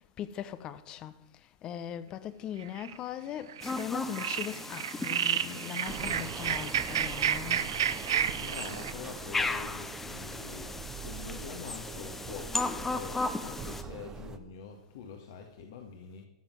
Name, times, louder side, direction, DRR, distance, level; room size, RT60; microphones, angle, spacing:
voice 1, 0.2-1.2 1.6-7.6, left 10 dB, 35° left, 1.0 m, -39 dB
sound 1, 2.6-3.0 3.5-3.8 4.1-8.9, right 9 dB, 70° right, 0.8 m, -31 dB
sound 2, 3.6-13.8, left 3 dB, 10° left, 1.0 m, -37 dB
sound 3, 5.9-14.4, right 6 dB, 20° right, 0.9 m, -43 dB
voice 2, 8.4-16.3, left 6 dB, 60° left, 1.9 m, -45 dB
14.0 x 7.3 x 7.9 m
hypercardioid pair, 100°, 2 cm